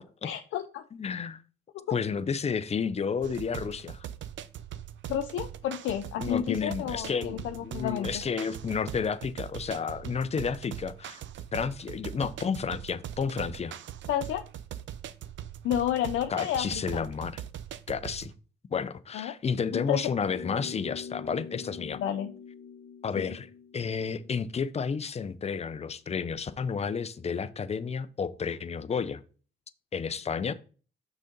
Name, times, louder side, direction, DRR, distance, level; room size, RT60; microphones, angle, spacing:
voice 1, 0.2-0.8 1.7-1.9 5.1-8.1 14.1-14.4 15.6-17.1 19.1-19.3 19.7-20.0 21.8-22.3 23.2-23.4, left 10 dB, 80° left, 0.6 m, -31 dB
voice 2, 1.0-1.4 1.9-4.1 6.2-11.2 11.5-13.8 16.3-17.4 17.9-18.3 18.7-22.0 23.0-23.5 23.7-29.2 29.9-30.5, left 6 dB, 30° left, 0.6 m, -31 dB
sound 1, 3.2-18.4, right 10 dB, 70° right, 0.6 m, -41 dB
sound 2, 20.2-24.9, left 6 dB, 55° left, 1.4 m, -44 dB
6.2 x 3.9 x 5.1 m
cardioid pair, 90°, 20 cm